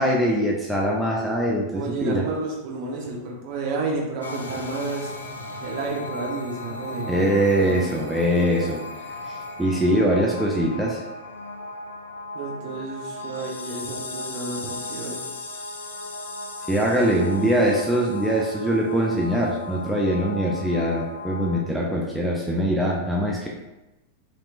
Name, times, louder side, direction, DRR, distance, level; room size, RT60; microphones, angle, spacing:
voice 1, 0.0-2.2 7.1-8.8 9.3-11.0 16.7-23.5, equal, 5° right, -3 dB, 0.4 m, -22 dB
voice 2, 1.7-5.1 5.6-7.3 7.6-8.1 12.3-15.2, right 3 dB, 45° right, -2 dB, 0.8 m, -31 dB
sound 1, 4.2-21.6, left 2 dB, 70° left, 0.4 m, -36 dB
3.0 x 2.9 x 2.4 m, 1.0 s
figure-of-eight pair, 90°, 0 cm